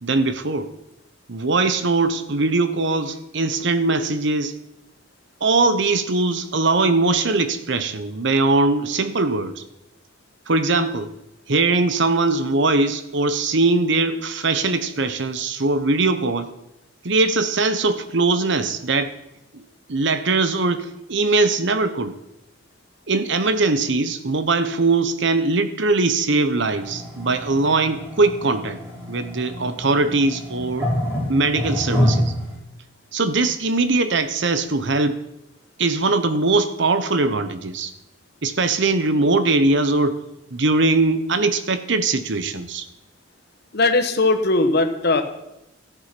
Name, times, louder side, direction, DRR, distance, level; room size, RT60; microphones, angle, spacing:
voice 1, 0.0-0.7 1.3-4.6 5.4-9.6 10.5-11.1 11.5-16.5 17.0-19.2 19.5-19.6 19.9-22.2 23.1-28.8 29.1-30.9 31.3-32.3 33.1-35.2 35.8-37.9 38.4-40.2 40.5-42.9, right 3 dB, 60° right, 11 dB, 1.0 m, -21 dB
sound 1, 26.7-32.6, equal, 15° right, 4.1 m, -27 dB
voice 2, 43.7-45.2, left 2 dB, 55° left, 6 dB, 1.1 m, -19 dB
13.5 x 8.2 x 6.0 m, 0.90 s
head